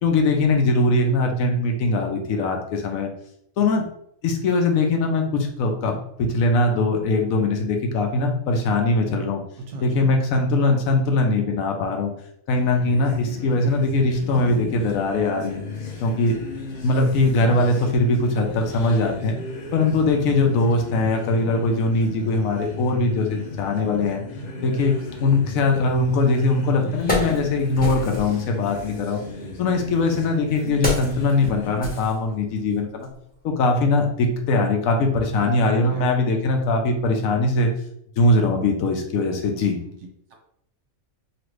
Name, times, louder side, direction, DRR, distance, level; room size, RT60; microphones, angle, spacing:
voice 1, 0.0-3.1 3.6-3.8 4.2-9.4 9.8-12.1 12.5-15.6 16.0-16.3 16.8-19.4 19.7-24.2 24.6-29.2 29.6-33.1 33.4-37.7 38.2-39.8, left 2 dB, 80° left, 3 dB, 1.0 m, -21 dB
voice 2, 9.6-10.1 35.3-36.1 39.8-39.9 40.3-40.4, right 3 dB, 65° right, 2 dB, 0.9 m, -38 dB
sound 1, 12.6-32.0, left 3 dB, 60° left, 0.4 m, -35 dB
Wood, 26.2-26.3 26.8-28.4 29.4-32.7 33.0-33.2, left 1 dB, 5° left, 0.9 m, -29 dB
3.0 x 2.5 x 3.1 m, 0.73 s
omnidirectional pair, 1.5 m